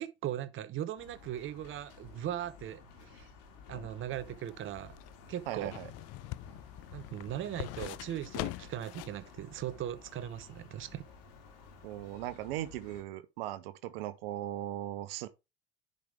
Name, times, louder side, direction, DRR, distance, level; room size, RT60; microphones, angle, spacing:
voice 1, 0.0-3.3 3.7-4.9 5.3-5.7 6.9-11.0, right 11 dB, 40° right, 0.9 m, -39 dB
sound 1, 1.0-13.0, left 4 dB, 70° left, 2.9 m, -54 dB
sound 2, 4.1-9.2 9.6-9.7, left 20 dB, 55° left, 0.6 m, -43 dB
voice 2, 5.5-5.9 11.8-15.3, right 14 dB, 75° right, 1.0 m, -38 dB
10.5 x 5.1 x 3.5 m
hypercardioid pair, 70°, 30 cm